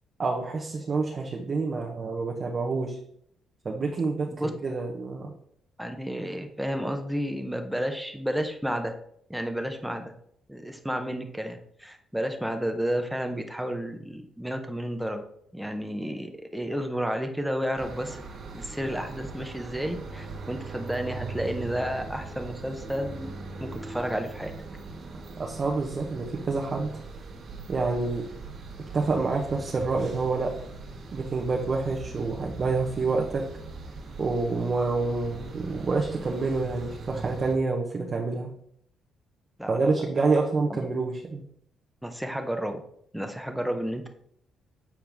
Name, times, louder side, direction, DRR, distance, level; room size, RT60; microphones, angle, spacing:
voice 1, 0.2-3.0 3.6-5.3 25.4-27.0 27.7-28.3 28.9-30.5 31.1-33.5 34.2-38.5 39.7-41.4, right 3 dB, 40° right, 0 dB, 0.9 m, -27 dB
voice 2, 5.8-8.9 9.3-10.1 10.5-15.2 15.5-18.2 18.5-23.3 23.6-24.5 39.6-39.9 40.7-40.9 42.0-42.8 43.1-44.1, equal, 5° right, 6 dB, 0.8 m, -31 dB
sound 1, 17.8-37.5, right 3 dB, 60° right, 1.4 m, -40 dB
7.2 x 4.5 x 3.5 m, 0.67 s
cardioid pair, 95°, 0 cm